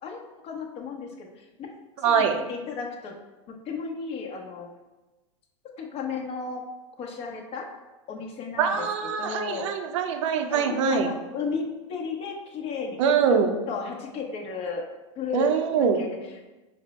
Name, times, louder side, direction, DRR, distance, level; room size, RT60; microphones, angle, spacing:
voice 1, 0.0-1.7 2.0-3.1 3.6-4.7 5.8-6.6 7.0-7.7 8.1-8.8 9.2-9.7 10.5-13.0 13.3-13.4 13.7-14.8 15.2-16.2, left 5 dB, 40° left, 1 dB, 0.9 m, -34 dB
voice 2, 2.0-2.4 8.6-11.1 13.0-13.6 15.3-16.0, right 6 dB, 70° right, 6 dB, 0.6 m, -23 dB
5.2 x 2.1 x 4.2 m, 1.1 s
hypercardioid pair, 110°, 16 cm